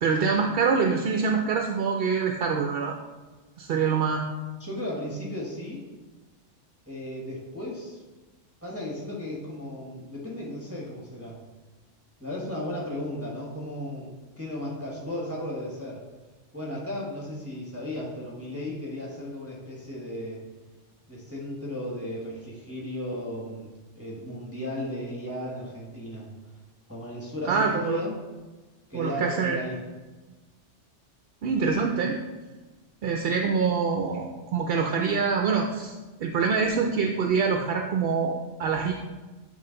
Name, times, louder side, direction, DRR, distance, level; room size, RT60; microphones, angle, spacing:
voice 1, 0.0-3.0 3.6-4.3 27.4-28.0 28.9-29.6 31.4-32.2 33.0-36.0 36.2-38.9, right 5 dB, 65° right, 2 dB, 0.6 m, -25 dB
voice 2, 4.6-5.8 6.9-8.0 8.6-11.4 12.2-16.0 16.5-20.4 21.1-23.7 24.0-26.3 26.9-28.2 28.9-29.8 33.4-33.5, left 1 dB, 10° right, -5 dB, 1.1 m, -35 dB
8.6 x 3.1 x 3.8 m, 1.2 s
omnidirectional pair, 1.3 m